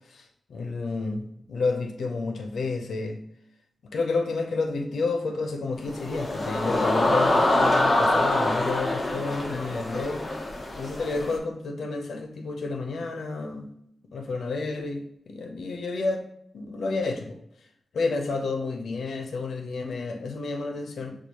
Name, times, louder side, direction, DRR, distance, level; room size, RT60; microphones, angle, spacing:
voice 1, 0.1-3.2 3.9-13.7 14.1-16.3 16.5-17.4 17.9-21.2, left 3 dB, 85° left, 4 dB, 0.6 m, -30 dB
sound 1, 5.9-11.4, left 1 dB, 25° left, 0.7 m, -25 dB
6.2 x 2.4 x 2.8 m, 0.73 s
wide cardioid pair, 150°, 0 cm